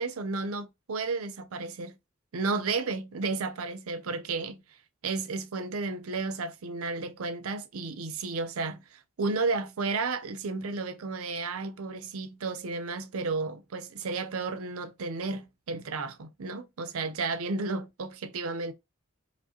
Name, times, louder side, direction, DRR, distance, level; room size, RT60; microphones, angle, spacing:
voice 1, 0.0-2.0 2.3-4.6 5.0-18.7, right 3 dB, 85° right, 0.5 m, -33 dB
4.6 x 2.1 x 2.8 m
head